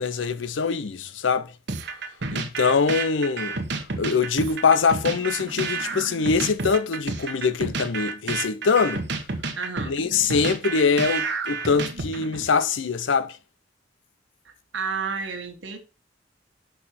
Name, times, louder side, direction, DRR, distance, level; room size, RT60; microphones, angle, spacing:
voice 1, 0.0-1.5 2.3-3.6 4.0-9.0 9.8-13.4, left 5 dB, 90° left, 0.6 m, -23 dB
sound 1, 1.7-12.5, right 3 dB, 65° right, 1.1 m, -30 dB
voice 2, 9.6-10.0 14.7-15.8, right 5 dB, 85° right, 1.6 m, -30 dB
6.3 x 5.4 x 4.2 m
head